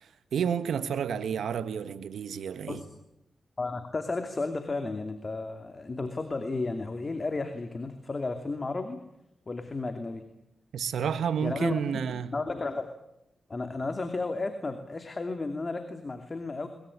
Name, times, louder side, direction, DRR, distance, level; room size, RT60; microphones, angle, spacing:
voice 1, 0.0-2.8 10.7-12.3, right 7 dB, 90° right, 1.5 m, -30 dB
voice 2, 3.6-9.0 9.5-10.2 11.4-11.7 12.3-12.9 13.5-16.7, left 3 dB, 40° left, 2.7 m, -33 dB
22.0 x 21.5 x 10.0 m
cardioid pair, 55°, 0 cm